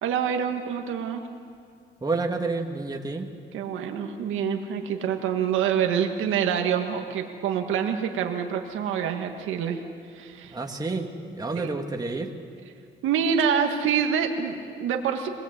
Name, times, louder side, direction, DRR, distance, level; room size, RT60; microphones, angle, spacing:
voice 1, 0.0-1.3 3.5-9.8 10.1-10.6 11.5-11.7 13.0-15.3, right 7 dB, 85° right, 4 dB, 1.7 m, -26 dB
voice 2, 2.0-3.3 10.5-12.3, right 3 dB, 20° right, 2 dB, 2.0 m, -29 dB
22.5 x 19.5 x 8.1 m, 2.2 s
cardioid pair, 90°, 20 cm